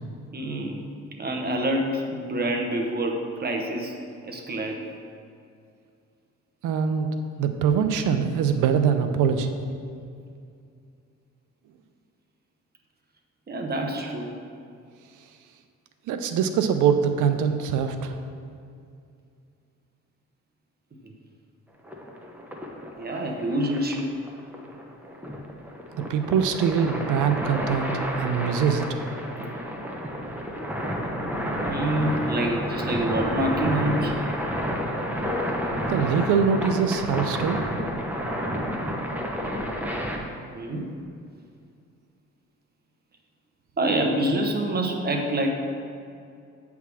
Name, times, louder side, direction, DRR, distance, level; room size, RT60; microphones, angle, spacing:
voice 1, 0.3-0.8 1.2-3.9 4.2-4.8 13.5-14.3 23.0-24.1 28.3-28.4 31.7-34.1 40.5-40.9 43.8-45.5, right 1 dB, 30° right, 2 dB, 1.1 m, -26 dB
voice 2, 6.6-7.1 7.4-9.5 16.1-18.1 25.9-28.8 35.9-37.6, right 7 dB, 85° right, 8 dB, 0.6 m, -23 dB
sound 1, 21.8-40.2, equal, 5° right, 0.9 m, -30 dB
8.4 x 3.6 x 6.2 m, 2.4 s
cardioid pair, 90°, 30 cm